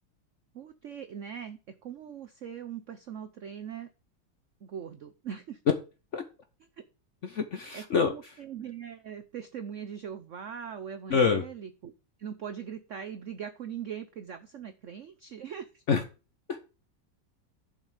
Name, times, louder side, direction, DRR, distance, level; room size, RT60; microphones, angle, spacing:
voice 1, 0.5-3.9 4.6-5.6 7.7-11.9 12.2-15.8, right 8 dB, 75° right, 9 dB, 0.7 m, -41 dB
voice 2, 7.2-8.1 11.1-11.4 15.9-16.0 16.5-16.6, left 5 dB, 55° left, 7 dB, 0.8 m, -26 dB
11.0 x 5.5 x 4.9 m, 0.31 s
omnidirectional pair, 2.2 m